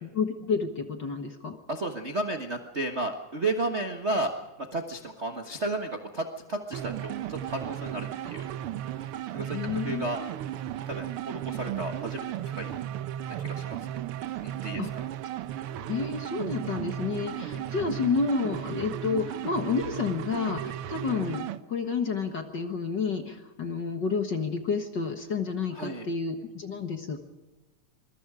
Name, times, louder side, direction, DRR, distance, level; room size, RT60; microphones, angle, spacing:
voice 1, 0.0-1.6 9.5-10.1 14.8-14.9 15.9-27.2, left 5 dB, 45° left, 5 dB, 1.6 m, -30 dB
voice 2, 1.7-4.3 4.7-8.5 9.3-10.2 10.9-12.7 13.4-13.8 14.4-15.0 25.7-26.1, right 2 dB, 45° right, 4 dB, 0.9 m, -33 dB
sound 1, 6.7-21.6, right 11 dB, 80° right, 1.2 m, -35 dB
25.5 x 22.0 x 4.9 m, 1.1 s
omnidirectional pair, 3.5 m